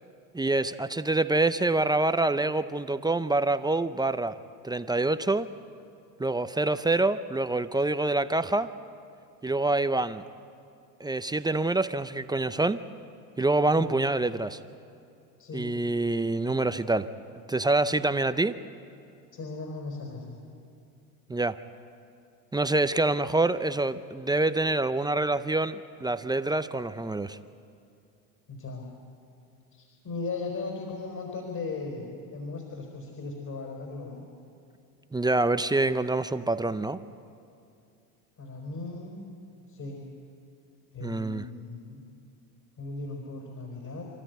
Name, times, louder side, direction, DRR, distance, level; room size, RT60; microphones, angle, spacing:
voice 1, 0.3-4.4 4.6-5.5 6.2-8.7 9.4-10.2 11.0-12.8 13.4-14.6 15.5-17.1 17.5-18.6 21.3-21.6 22.5-27.4 35.1-37.0 41.0-41.4, right 2 dB, 10° right, 11 dB, 0.6 m, -26 dB
voice 2, 15.4-15.8 19.3-20.4 28.5-28.9 29.7-34.2 38.4-39.2 39.7-40.1 40.9-42.0 42.8-44.1, left 3 dB, 40° left, 1 dB, 4.7 m, -37 dB
27.5 x 13.5 x 9.4 m, 2.5 s
supercardioid pair, 95°, 45 cm